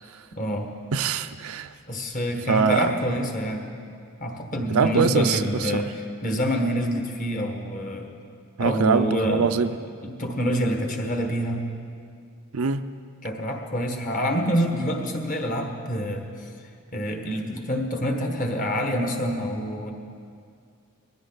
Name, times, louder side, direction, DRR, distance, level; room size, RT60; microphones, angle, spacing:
voice 1, 0.4-0.7 1.9-3.7 4.2-5.9 6.2-8.1 8.6-9.5 10.0-11.6 13.2-16.5 16.9-19.9, equal, 35° left, 3 dB, 1.5 m, -26 dB
voice 2, 0.9-1.7 2.5-3.0 4.7-5.8 8.6-9.7 12.5-12.9, right 5 dB, 75° right, 10 dB, 0.5 m, -23 dB
20.0 x 15.0 x 4.0 m, 2.3 s
head